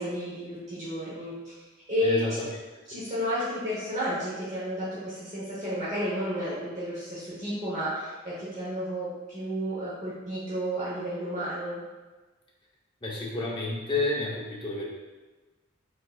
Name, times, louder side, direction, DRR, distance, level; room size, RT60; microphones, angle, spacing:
voice 1, 0.0-1.5 1.9-2.3 2.9-11.8, equal, 35° right, -9 dB, 1.0 m, -32 dB
voice 2, 2.0-2.5 13.0-14.9, left 2 dB, 25° left, -4 dB, 0.8 m, -30 dB
5.2 x 3.7 x 2.3 m, 1.3 s
head